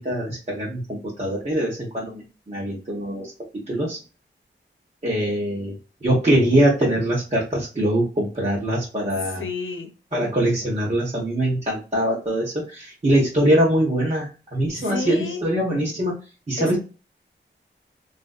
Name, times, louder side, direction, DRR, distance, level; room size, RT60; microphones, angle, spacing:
voice 1, 0.0-4.0 5.0-5.8 6.0-9.5 10.1-16.1 16.5-16.8, right 1 dB, 35° right, -6 dB, 1.1 m, -23 dB
voice 2, 9.4-9.9 14.8-15.4 16.6-16.8, left 4 dB, 90° left, 6 dB, 0.7 m, -30 dB
3.1 x 2.6 x 2.3 m, 0.33 s
wide cardioid pair, 100°, 20 cm